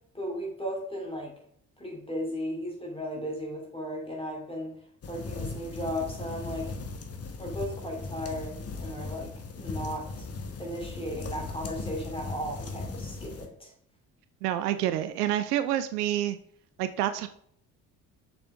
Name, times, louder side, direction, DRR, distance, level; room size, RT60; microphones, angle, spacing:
voice 1, 0.1-1.3 1.8-4.8 5.1-6.8 7.4-10.3 10.6-13.7, equal, 10° left, -1 dB, 2.7 m, -36 dB
sound 1, 5.0-13.5, left 3 dB, 30° left, 1.1 m, -38 dB
voice 2, 14.4-16.4 16.8-17.3, right 12 dB, 70° right, 11 dB, 0.5 m, -28 dB
6.6 x 5.5 x 3.4 m, 0.65 s
figure-of-eight pair, 45°, 48 cm